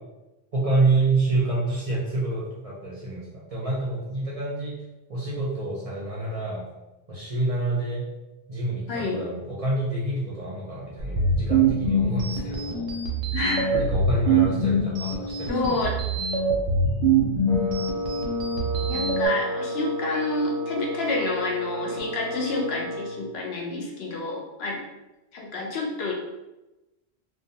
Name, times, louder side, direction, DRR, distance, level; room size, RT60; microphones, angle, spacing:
voice 1, 0.5-4.7 5.1-6.6 7.1-8.0 8.5-12.9 13.7-15.8, right 2 dB, 45° right, -6 dB, 0.5 m, -27 dB
sound 1, 11.0-19.3, right 3 dB, 85° right, 0.9 m, -24 dB
voice 2, 13.3-13.8 15.5-15.9 18.8-24.8 25.3-26.1, left 2 dB, 75° left, -1 dB, 0.8 m, -28 dB
Wind instrument woodwind instrument, 17.5-23.2, equal, 35° left, 0.8 m, -32 dB
2.3 x 2.2 x 2.7 m, 1.0 s
omnidirectional pair, 1.1 m